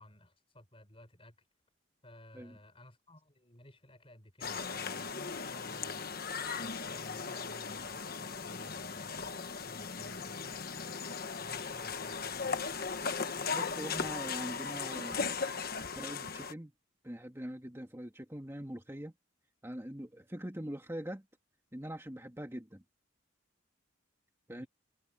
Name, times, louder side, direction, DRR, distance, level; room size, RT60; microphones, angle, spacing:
voice 1, 0.0-1.4 2.0-6.2 6.5-9.3 9.7-11.0 11.4-12.8 24.5-24.7, left 1 dB, 30° left, 5.2 m, -56 dB
sound 1, 4.4-16.5, left 5 dB, 50° left, 1.3 m, -37 dB
voice 2, 13.5-15.4 16.0-16.7 17.0-19.1 19.6-21.3 21.7-22.8 24.5-24.7, equal, 15° right, 2.2 m, -43 dB
head